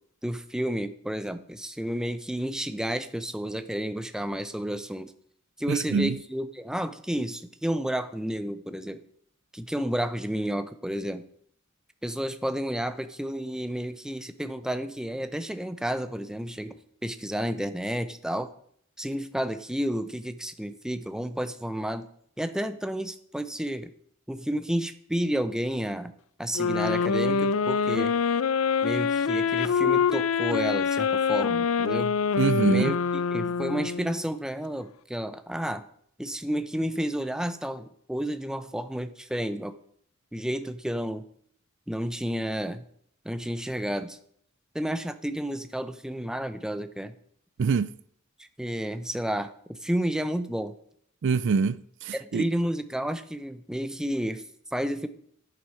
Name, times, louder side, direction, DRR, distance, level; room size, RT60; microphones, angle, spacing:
voice 1, 0.2-5.1 5.6-9.0 9.5-11.2 12.0-18.5 19.0-22.1 22.4-23.9 24.3-26.1 26.4-28.1 28.8-32.1 32.6-33.0 33.3-35.9 36.2-39.7 40.3-41.2 41.9-42.8 43.2-44.2 44.7-47.1 48.6-50.7 52.1-54.4 54.7-55.1, equal, 5° right, 0.6 m, -31 dB
voice 2, 5.7-6.2 32.4-32.9 47.6-47.9 51.2-52.4, right 5 dB, 60° right, 0.4 m, -25 dB
sound 1, 26.5-34.3, left 6 dB, 85° left, 0.5 m, -25 dB
10.5 x 7.9 x 5.6 m
head